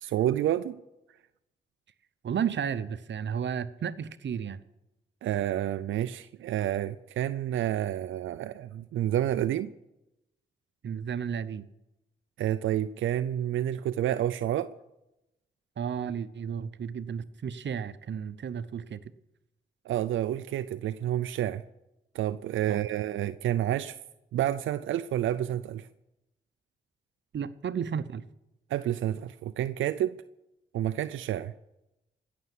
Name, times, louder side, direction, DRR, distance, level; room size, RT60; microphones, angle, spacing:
voice 1, 0.0-0.8 5.2-9.7 12.4-14.7 19.9-21.6 22.1-24.0 24.3-25.9 28.7-30.2 30.7-31.5, right 12 dB, 90° right, 11 dB, 0.5 m, -29 dB
voice 2, 2.2-4.6 10.8-11.7 15.8-19.0 22.7-22.8 27.3-28.2, right 7 dB, 65° right, 13 dB, 0.8 m, -33 dB
16.5 x 7.0 x 9.8 m, 0.91 s
supercardioid pair, 50°, 20 cm